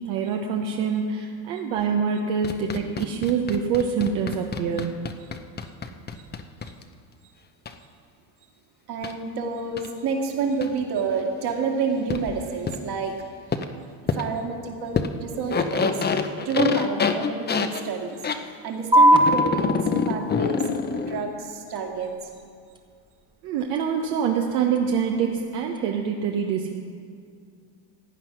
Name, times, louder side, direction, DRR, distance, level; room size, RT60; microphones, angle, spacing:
voice 1, 0.1-5.0 23.4-26.8, right 6 dB, 70° right, 2 dB, 1.2 m, -25 dB
sound 1, 2.4-6.8 7.7-7.8 9.0-9.1 9.8-9.9 10.6-10.7 12.1-12.2 12.7-12.8 13.5-13.7 14.1-14.2 14.9-15.1 15.3-18.4 19.1-21.2, left 5 dB, 20° left, 0.7 m, -26 dB
voice 2, 8.9-13.2 14.1-18.2 18.6-19.8 20.1-20.6 21.1-22.2, right 4 dB, 50° right, 2 dB, 2.3 m, -28 dB
sound 2, 18.9-25.9, equal, 10° right, 1.2 m, -25 dB
15.5 x 9.4 x 5.9 m, 2.2 s
supercardioid pair, 105°, 49 cm